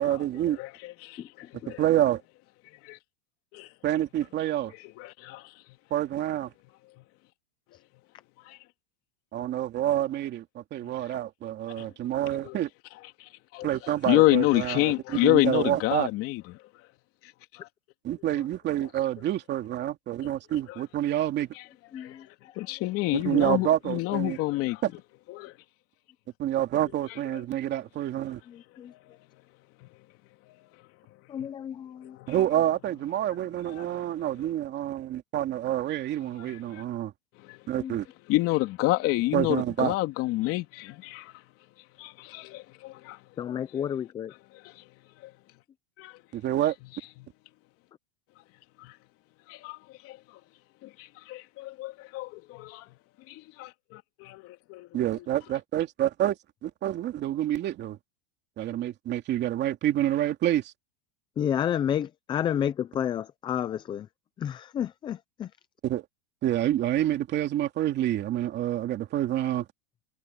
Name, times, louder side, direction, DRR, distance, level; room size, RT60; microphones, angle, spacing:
voice 1, 0.0-0.6 1.7-2.2 3.8-4.7 5.9-6.5 9.3-12.7 13.6-16.1 18.0-21.5 23.1-24.4 26.4-28.4 32.3-37.1 37.7-38.1 39.3-39.9 46.3-46.7 54.9-56.4 56.6-58.0 58.6-60.7 65.8-66.1 66.4-69.7, right 12 dB, 30° right, 2.7 m, -28 dB
voice 2, 0.6-1.8 2.8-3.0 3.5-3.7 5.0-5.5 8.5-8.6 11.8-11.9 12.4-12.6 13.2-16.4 17.5-17.7 20.2-20.3 20.7-20.8 21.9-24.8 25.3-25.5 27.3-27.4 28.9-29.2 29.8-29.9 30.5-30.6 31.4-31.7 32.0-32.3 33.8-34.0 36.4-36.8 37.4-37.6 38.3-41.3 42.0-43.2 43.8-43.9 44.6-44.8 45.2-45.3 46.0-46.2 48.8-48.9 49.5-49.8 50.0-50.2 50.8-52.9 53.3-55.2, left 19 dB, 45° left, 3.2 m, -29 dB
voice 3, 21.9-22.2 28.8-28.9 31.3-32.1 37.8-37.9 43.4-44.3 61.4-64.1 64.4-65.5, left 9 dB, 15° left, 0.4 m, -30 dB
supercardioid pair, 145°, 33 cm